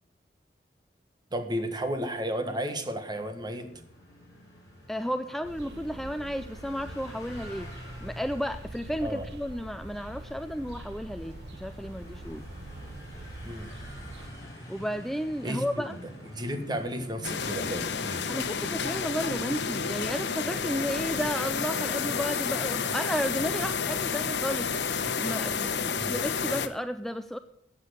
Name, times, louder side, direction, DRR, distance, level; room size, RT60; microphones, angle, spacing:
voice 1, 1.3-3.7 9.0-9.3 13.4-13.7 15.4-16.0 16.3-18.2 25.8-26.1, equal, 25° right, 7 dB, 1.5 m, -33 dB
sound 1, 3.2-19.7, equal, 20° left, 6.1 m, -48 dB
voice 2, 4.9-7.7 8.0-12.4 14.7-16.0 18.3-24.7 25.0-27.4, equal, ahead, 9 dB, 0.4 m, -33 dB
sound 2, 5.4-14.3, right 1 dB, 75° right, 1.2 m, -44 dB
sound 3, 17.2-26.7, left 6 dB, 90° left, 1.0 m, -30 dB
14.5 x 8.6 x 6.7 m, 0.76 s
head